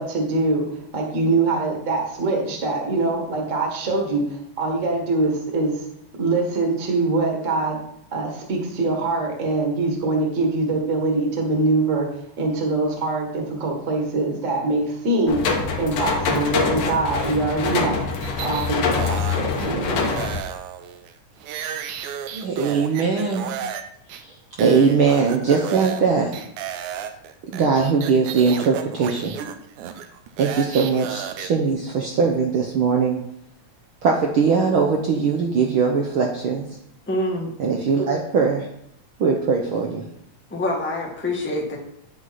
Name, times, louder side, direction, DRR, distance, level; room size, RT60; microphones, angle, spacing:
voice 1, 0.0-5.8 6.2-7.8 8.1-12.1 12.4-15.4 15.8-18.0 18.4-20.2, right 2 dB, 30° right, 0 dB, 1.7 m, -23 dB
sound 1, 15.3-20.4, left 5 dB, 65° left, 2.2 m, -24 dB
sound 2, 18.2-19.7 20.1-23.8 24.1-24.2 24.6-26.0 26.3-31.5, right 9 dB, 85° right, 2.2 m, -33 dB
voice 2, 22.3-23.5 24.2-26.4 27.5-29.4 30.4-33.2 34.0-36.7 37.6-38.7 39.2-40.0, right 5 dB, 70° right, 0 dB, 1.2 m, -20 dB
voice 3, 37.1-37.5 40.5-41.8, left 1 dB, 5° left, -1 dB, 0.9 m, -25 dB
9.1 x 8.0 x 4.2 m, 0.73 s
omnidirectional pair, 3.5 m